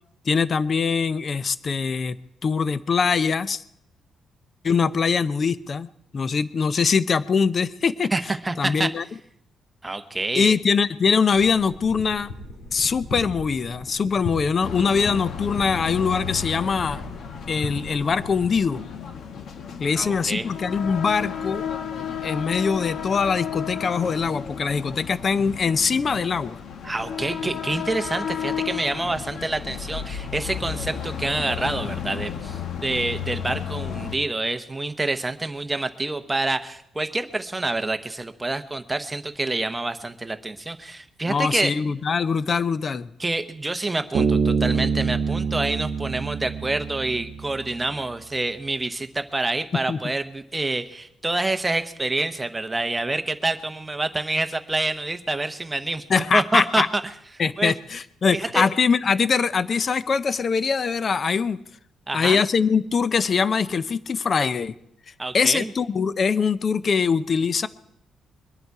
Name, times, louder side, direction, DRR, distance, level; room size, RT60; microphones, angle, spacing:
voice 1, 0.3-2.2 2.4-3.6 4.6-5.9 6.1-8.1 8.6-9.0 10.3-12.3 12.7-17.0 17.5-18.9 19.8-21.6 22.2-26.6 41.3-43.1 49.7-50.1 56.1-56.9 57.4-61.6 62.1-64.7 65.3-67.7, left 5 dB, 35° left, 15 dB, 0.5 m, -22 dB
voice 2, 8.1-8.9 9.8-10.5 20.0-20.5 26.8-41.7 43.2-57.0 57.6-57.7 58.3-58.7 62.1-62.4 65.2-65.7, right 2 dB, 10° right, 8 dB, 0.9 m, -27 dB
sound 1, 11.3-18.5, left 2 dB, 80° left, 2.9 m, -38 dB
sound 2, 14.6-34.2, left 7 dB, 55° left, 1.0 m, -33 dB
Bass guitar, 44.1-47.6, right 5 dB, 65° right, 1.0 m, -25 dB
22.5 x 11.0 x 4.7 m, 0.76 s
cardioid pair, 170°, 0 cm